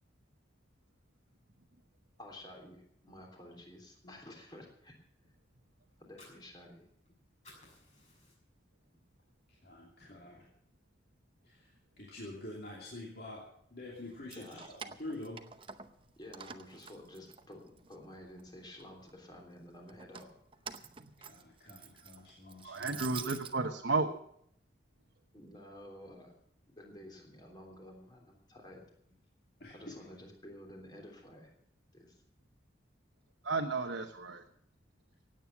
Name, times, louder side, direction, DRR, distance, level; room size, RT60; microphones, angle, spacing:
voice 1, 2.2-4.9 6.0-6.8 14.3-14.6 16.2-20.3 25.3-26.3 26.7-28.8 29.7-31.5 31.9-32.2, left 1 dB, 25° left, 1 dB, 3.3 m, -51 dB
Fire, 5.9-7.1 7.3-8.7 9.1-9.2 9.6-10.6, left 1 dB, 40° left, 6.3 m, -59 dB
voice 2, 9.6-10.4 11.4-11.7 12.0-13.4 13.7-14.6 15.0-15.4 21.2-23.0 29.6-29.7, left 2 dB, 55° left, -3 dB, 2.9 m, -46 dB
Keys jangling, 14.1-16.0 16.3-18.0 18.4-19.1 19.9-23.5, right 7 dB, 30° right, 0.7 m, -48 dB
voice 3, 22.6-24.1 33.4-34.4, right 3 dB, 80° right, 2 dB, 1.1 m, -33 dB
16.5 x 9.1 x 7.2 m, 0.70 s
head